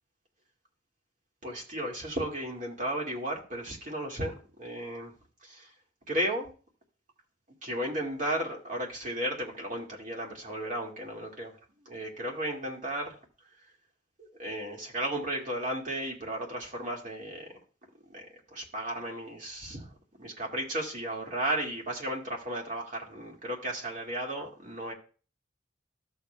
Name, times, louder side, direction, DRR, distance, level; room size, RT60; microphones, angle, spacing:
voice 1, 1.4-4.3 4.6-5.1 5.4-5.7 6.1-6.5 7.6-11.5 11.9-13.2 14.2-17.5 18.1-19.9 20.2-24.9, right 1 dB, 40° right, 0 dB, 2.0 m, -34 dB
14.0 x 6.9 x 2.2 m, 0.36 s
head